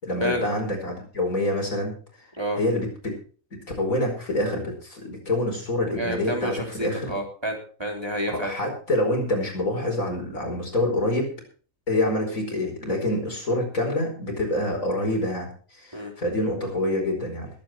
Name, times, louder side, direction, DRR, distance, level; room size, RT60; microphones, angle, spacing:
voice 1, 0.0-1.9 2.6-3.1 3.8-7.1 8.3-11.3 11.9-17.5, left 1 dB, 85° left, 1 dB, 5.3 m, -26 dB
voice 2, 6.0-8.5 15.9-16.1, equal, 20° right, 1 dB, 3.5 m, -29 dB
21.5 x 8.6 x 4.6 m, 0.41 s
omnidirectional pair, 1.4 m